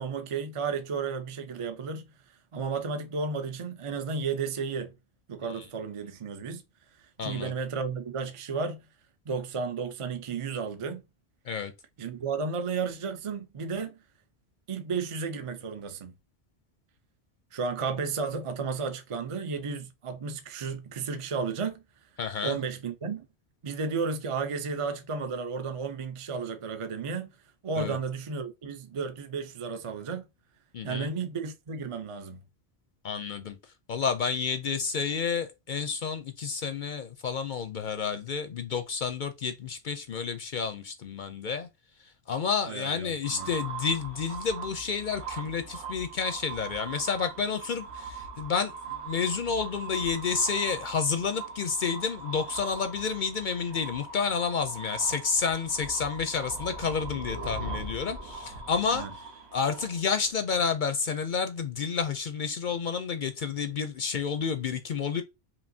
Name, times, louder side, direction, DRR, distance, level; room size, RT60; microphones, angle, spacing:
voice 1, 0.0-4.9 5.3-6.6 7.0-8.8 9.3-11.0 12.0-14.0 14.7-16.1 17.5-21.8 22.4-23.3 23.6-27.3 27.6-30.3 30.8-32.4 42.7-43.5 58.9-59.1, right 5 dB, 40° right, 0.5 m, -33 dB
voice 2, 7.2-7.5 11.5-11.7 22.2-22.6 27.8-28.0 30.7-31.1 33.0-33.6 33.9-41.7 42.3-59.1 59.5-65.2, left 5 dB, 55° left, 0.6 m, -30 dB
sound 1, 43.2-60.3, right 4 dB, 85° right, 1.4 m, -40 dB
5.1 x 2.9 x 2.6 m
omnidirectional pair, 1.1 m